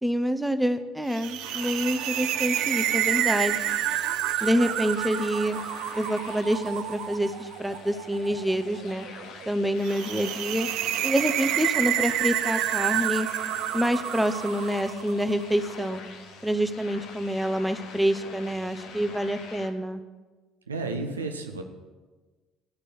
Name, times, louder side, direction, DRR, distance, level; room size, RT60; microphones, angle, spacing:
voice 1, 0.0-3.6 4.4-5.6 6.0-9.1 9.5-10.7 11.0-13.3 13.7-16.0 16.4-20.0, equal, 5° right, 10 dB, 0.9 m, -27 dB
sound 1, 1.1-19.7, left 5 dB, 60° left, 1.3 m, -45 dB
sound 2, 1.1-15.4, right 13 dB, 60° right, 0.4 m, -29 dB
voice 2, 20.7-21.6, right 3 dB, 85° right, 5 dB, 1.0 m, -32 dB
13.0 x 6.6 x 7.7 m, 1.3 s
figure-of-eight pair, 55°, 0 cm